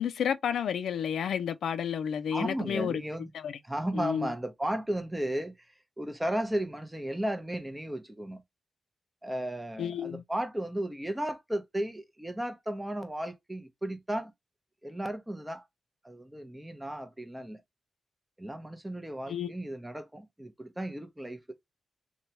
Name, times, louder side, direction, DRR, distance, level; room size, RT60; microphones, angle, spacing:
voice 1, 0.0-3.0 3.3-3.6 3.9-4.3 9.8-10.2 19.3-19.5, left 8 dB, 90° left, 0.3 m, -31 dB
voice 2, 2.3-3.3 3.6-5.5 6.0-8.4 9.2-14.3 14.8-15.6 16.0-17.6 18.4-21.5, right 1 dB, 10° right, 0.6 m, -34 dB
3.0 x 2.2 x 2.8 m
cardioid pair, 90°, 0 cm